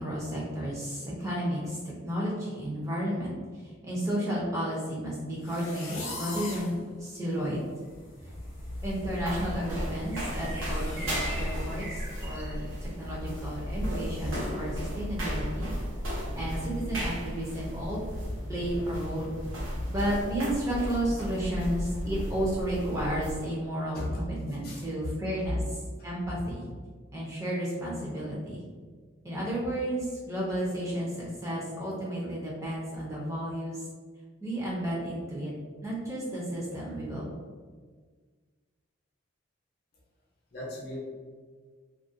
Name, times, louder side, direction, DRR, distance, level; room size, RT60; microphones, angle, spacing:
voice 1, 0.0-3.4 3.6-7.6 8.8-15.7 16.3-18.0 18.5-19.4 19.9-26.6 27.1-28.6 29.2-33.9 34.4-35.5 35.8-37.4, right 1 dB, 15° right, -6 dB, 0.5 m, -32 dB
sound 1, 5.4-6.8 7.3-7.4 7.8-8.1 8.3-12.0 12.4-12.5 13.0-13.1 13.9-14.4, left 3 dB, 90° left, 0.6 m, -43 dB
sound 2, 7.8-14.6, right 1 dB, 55° right, 0.8 m, -45 dB
sound 3, 8.2-23.5, equal, 90° right, 0.8 m, -34 dB
voice 2, 24.6-25.1 25.4-25.5 40.5-41.0, left 1 dB, 50° left, -4 dB, 0.6 m, -36 dB
2.4 x 2.1 x 2.5 m, 1.5 s
head